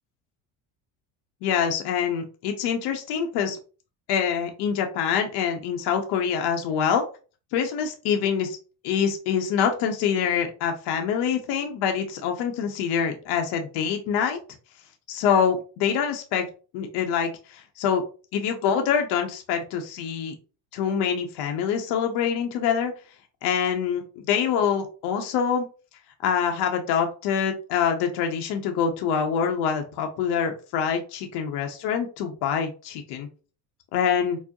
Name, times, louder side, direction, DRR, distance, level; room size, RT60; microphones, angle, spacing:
voice 1, 1.4-3.6 4.1-7.1 7.5-8.6 8.8-14.4 15.1-16.5 16.7-18.0 18.3-20.3 20.7-22.9 23.4-25.7 26.2-33.3 33.9-34.4, left 7 dB, 65° left, 4 dB, 0.7 m, -25 dB
4.5 x 2.0 x 2.9 m, 0.36 s
supercardioid pair, 110°, 44 cm